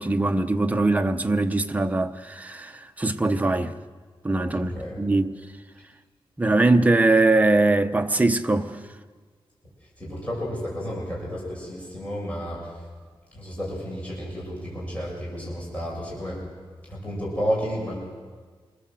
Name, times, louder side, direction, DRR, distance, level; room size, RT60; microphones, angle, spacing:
voice 1, 0.0-3.7 4.2-5.3 6.4-8.7, right 2 dB, 15° right, 0.9 m, -22 dB
voice 2, 4.6-5.0 10.0-12.8 13.3-16.5 16.9-18.1, equal, 15° left, 6.7 m, -31 dB
27.0 x 20.5 x 7.7 m
wide cardioid pair, 175°, 10 cm